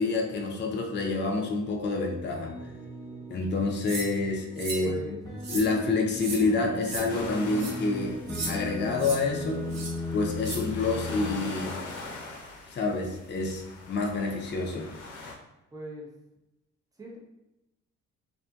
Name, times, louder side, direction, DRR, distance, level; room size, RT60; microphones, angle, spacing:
voice 1, 0.0-2.5 3.3-5.2 5.5-8.2 8.4-9.6 10.1-11.8 12.7-13.6 13.9-14.9, left 3 dB, 35° left, 0 dB, 0.5 m, -28 dB
sound 1, 2.4-11.3, left 1 dB, 15° left, 1.1 m, -37 dB
sound 2, 3.9-4.1 4.6-4.8 5.4-5.7 6.2-6.4 6.8-7.0 7.5-7.7 8.3-8.5 9.0-9.2 9.7-9.9 10.4-10.6, right 3 dB, 60° right, 0.8 m, -35 dB
voice 2, 4.7-5.2 15.7-16.1 17.0-17.2, right 1 dB, 10° right, -2 dB, 0.7 m, -39 dB
sound 3, 7.1-15.3, left 3 dB, 75° left, 0.6 m, -43 dB
2.6 x 2.6 x 2.3 m, 0.94 s
cardioid pair, 90°, 30 cm